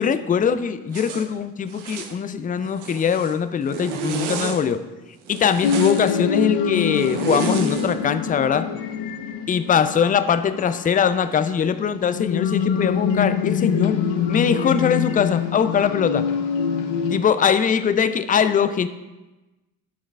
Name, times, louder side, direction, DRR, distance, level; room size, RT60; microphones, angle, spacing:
voice 1, 0.0-4.8 5.3-8.7 9.5-14.0 14.3-16.3 17.1-18.9, left 7 dB, 20° left, 12 dB, 0.4 m, -21 dB
Zipper (clothing), 0.9-1.3 1.7-2.2 2.6-3.3 3.7-4.6 5.3-6.1 6.9-7.9, right 6 dB, 80° right, 1.0 m, -31 dB
sound 1, 5.6-17.2, left 7 dB, 70° left, 0.8 m, -25 dB
10.5 x 6.4 x 2.4 m, 1.1 s
hypercardioid pair, 55°, 49 cm